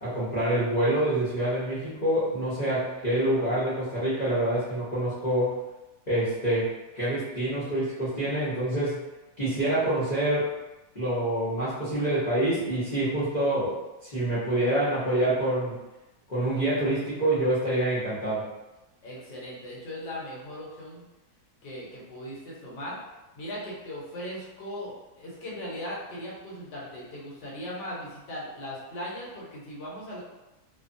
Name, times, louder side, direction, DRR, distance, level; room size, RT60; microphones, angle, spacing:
voice 1, 0.0-5.6 6.1-9.0 9.4-10.5 10.9-13.8 14.0-15.8 16.3-18.4, right 1 dB, 35° left, -12 dB, 0.7 m, -26 dB
voice 2, 19.0-21.0 21.6-23.0 23.3-30.2, equal, 70° left, -5 dB, 1.5 m, -38 dB
3.1 x 2.1 x 2.5 m, 1.0 s
omnidirectional pair, 1.9 m